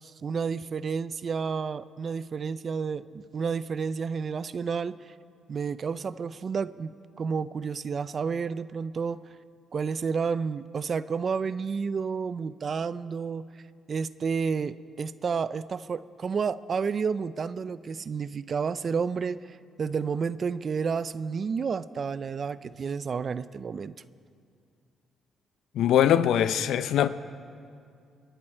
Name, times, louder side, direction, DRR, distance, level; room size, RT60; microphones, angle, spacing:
voice 1, 0.0-5.1 5.5-9.2 9.7-13.5 13.9-23.9, right 5 dB, 45° right, 0.4 m, -31 dB
voice 2, 25.7-27.1, left 10 dB, 80° left, 0.5 m, -22 dB
27.0 x 11.0 x 4.4 m
cardioid pair, 90°, 0 cm